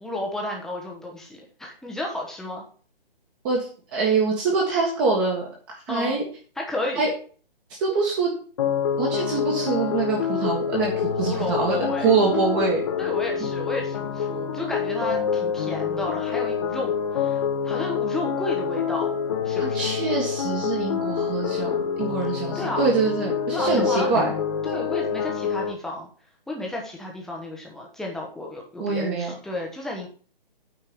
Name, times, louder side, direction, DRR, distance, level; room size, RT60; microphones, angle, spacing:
voice 1, 0.0-2.6 5.9-6.2 6.6-7.1 11.3-12.1 13.0-19.2 19.4-19.9 22.5-22.9 23.5-24.2 24.6-26.1 26.5-30.1, left 1 dB, ahead, -1 dB, 1.1 m, -32 dB
voice 2, 3.4-6.2 7.0-7.1 7.8-8.3 9.0-10.9 11.2-12.8 19.6-24.3 28.8-29.3, right 4 dB, 20° right, -2 dB, 1.6 m, -24 dB
sound 1, 8.6-25.7, left 7 dB, 35° left, 1.2 m, -27 dB
9.2 x 4.5 x 7.0 m, 0.42 s
figure-of-eight pair, 140°, 29 cm